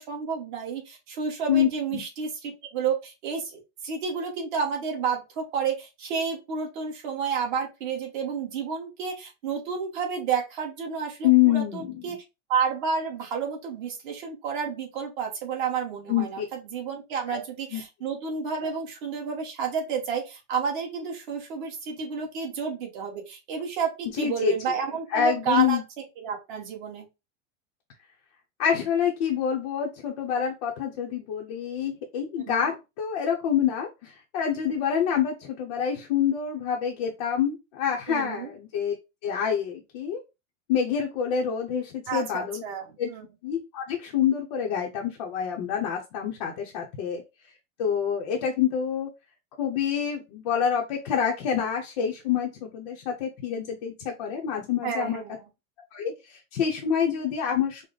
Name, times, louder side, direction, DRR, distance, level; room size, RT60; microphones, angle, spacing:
voice 1, 0.0-12.2 12.5-25.8 26.2-27.1 32.5-32.6 38.1-38.5 42.1-43.3 54.8-55.4, right 6 dB, 40° right, 1 dB, 1.3 m, -30 dB
voice 2, 1.5-2.0 11.2-12.2 16.1-16.4 17.3-17.4 17.7-17.8 24.2-24.5 25.1-25.8 28.6-38.9 39.2-40.2 40.7-42.6 43.0-43.1 43.4-47.2 47.8-49.1 49.6-55.2 55.9-57.8, left 8 dB, 30° left, -1 dB, 0.6 m, -27 dB
5.0 x 2.1 x 3.9 m, 0.25 s
supercardioid pair, 180°, 38 cm